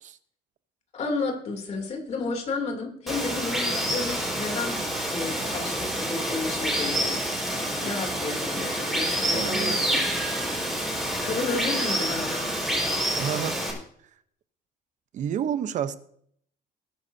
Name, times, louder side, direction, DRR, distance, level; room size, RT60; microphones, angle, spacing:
voice 1, 0.9-4.8 5.1-7.2 7.8-10.3 11.2-12.5, left 3 dB, 40° left, 2 dB, 3.0 m, -32 dB
Water, 3.1-13.7, equal, ahead, 5.0 m, -28 dB
voice 2, 9.3-10.0 13.2-13.5 15.1-16.0, right 9 dB, 50° right, 13 dB, 0.9 m, -30 dB
20.5 x 10.5 x 2.8 m, 0.64 s
cardioid pair, 150°, 17 cm